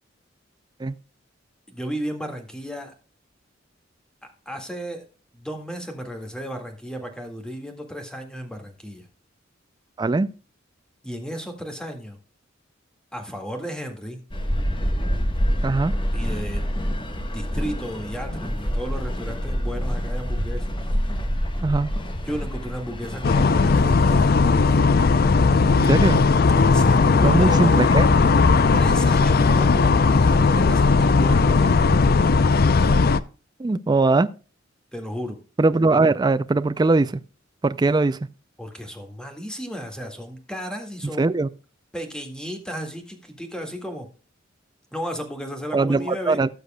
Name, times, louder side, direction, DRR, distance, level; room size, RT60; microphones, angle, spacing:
voice 1, 1.7-2.9 4.2-5.0 5.3-9.0 11.0-12.2 13.1-14.2 16.1-16.8 17.3-20.8 22.3-24.8 26.5-27.9 28.7-31.8 34.9-35.4 38.6-41.3 41.9-44.1 44.9-46.4, equal, 5° left, 1.9 m, -34 dB
voice 2, 10.0-10.3 15.6-15.9 21.6-21.9 25.8-26.2 27.2-28.1 33.6-34.3 35.6-37.2 37.6-38.2 41.2-41.5 45.7-46.5, right 3 dB, 20° right, 0.4 m, -20 dB
sound 1, 14.3-23.8, equal, 25° left, 1.2 m, -26 dB
sound 2, 23.2-33.2, left 4 dB, 50° left, 0.5 m, -17 dB
17.5 x 6.6 x 2.2 m
head